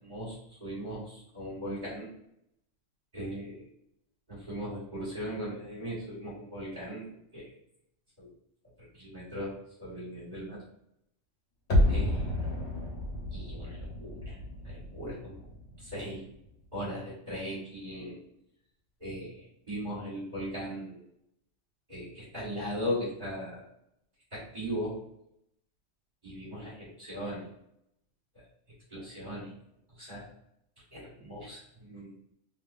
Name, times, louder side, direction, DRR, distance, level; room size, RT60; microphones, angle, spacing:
voice 1, 0.0-2.1 3.1-3.6 4.3-7.0 7.3-7.5 8.2-8.3 8.9-9.5 9.8-10.6 11.9-12.3 13.3-14.4 14.6-15.5 15.8-16.2 16.7-18.2 19.0-21.0 21.9-23.6 24.3-25.0 26.2-27.5 28.9-29.5 29.9-30.3 30.9-32.1, equal, 40° right, -8 dB, 1.7 m, -38 dB
sound 1, 11.7-16.6 16.9-17.0, left 1 dB, 60° left, 1.4 m, -31 dB
3.5 x 3.0 x 2.5 m, 0.77 s
omnidirectional pair, 1.3 m